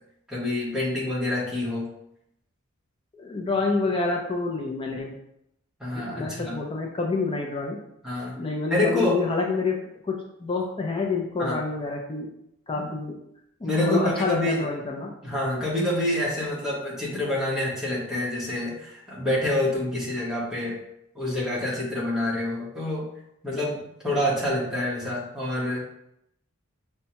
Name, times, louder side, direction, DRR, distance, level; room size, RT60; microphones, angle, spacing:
voice 1, 0.3-1.9 5.8-6.6 8.0-8.3 8.7-9.2 11.4-11.6 12.7-12.9 13.6-14.7 15.2-20.8 21.1-23.0 23.4-25.8, left 1 dB, 5° right, -7 dB, 1.1 m, -27 dB
voice 2, 3.2-5.1 6.2-7.8 8.4-9.8 10.0-10.1 10.4-12.3 12.7-13.1 13.6-15.1, left 3 dB, 25° left, 0 dB, 0.4 m, -27 dB
5.3 x 2.2 x 2.8 m, 0.80 s
head